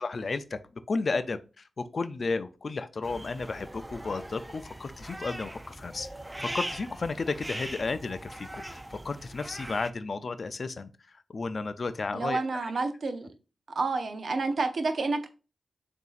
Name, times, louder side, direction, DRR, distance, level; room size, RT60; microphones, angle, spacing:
voice 1, 0.0-6.1 6.4-12.4, left 3 dB, 60° left, 0.4 m, -33 dB
sound 1, 3.0-9.9, right 1 dB, 15° right, 0.4 m, -41 dB
voice 2, 12.1-13.3 13.7-15.3, right 3 dB, 70° right, 0.6 m, -29 dB
6.7 x 2.7 x 2.4 m
cardioid pair, 45°, 0 cm